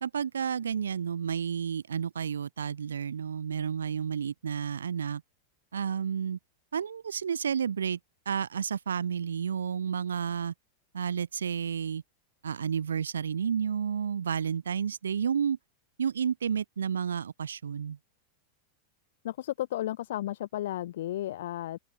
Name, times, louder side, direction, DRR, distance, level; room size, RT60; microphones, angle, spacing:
voice 1, 0.0-5.2 5.7-6.4 6.7-8.0 8.3-10.5 10.9-12.0 12.4-15.6 16.0-18.0, right 7 dB, 70° right, 2.0 m, -31 dB
voice 2, 19.2-21.8, left 13 dB, 55° left, 0.8 m, -33 dB
open air
figure-of-eight pair, 90°, 0 cm